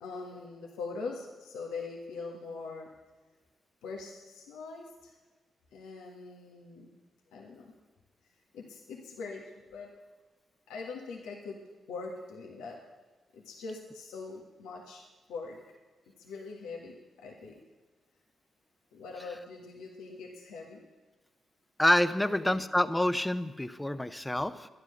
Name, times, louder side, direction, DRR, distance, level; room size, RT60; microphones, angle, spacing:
voice 1, 0.0-2.9 3.8-5.1 5.7-7.0 7.3-7.7 8.5-10.0 10.7-12.9 13.3-15.0 15.3-15.6 16.1-17.6 18.9-20.9 22.2-22.6, left 4 dB, 85° left, 0 dB, 1.6 m, -42 dB
voice 2, 21.8-24.7, left 1 dB, 10° left, 12 dB, 0.8 m, -27 dB
12.0 x 10.5 x 6.6 m, 1.3 s
supercardioid pair, 50°, 0 cm